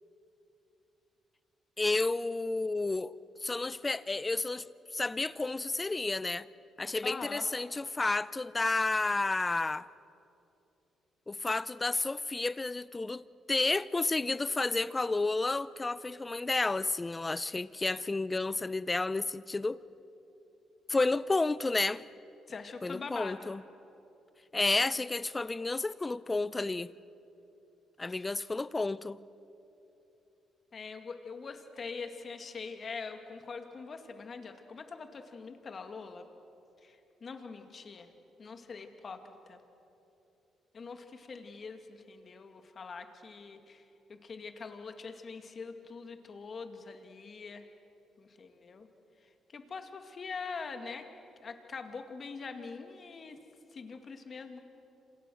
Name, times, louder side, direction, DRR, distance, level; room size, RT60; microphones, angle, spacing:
voice 1, 1.8-3.1 3.4-4.7 4.9-6.5 6.8-9.8 11.3-19.8 20.9-22.0 22.8-23.6 24.5-26.9 28.0-29.2, left 3 dB, 20° left, 0.6 m, -31 dB
voice 2, 7.0-7.4 22.5-23.5 28.2-28.3 30.7-36.3 36.8-38.1 38.4-39.6 40.7-43.8 44.1-47.6 48.2-48.9 49.5-51.1 51.4-53.4 53.7-54.6, left 4 dB, 45° left, 2.3 m, -43 dB
27.5 x 27.0 x 6.4 m
cardioid pair, 90°, 0 cm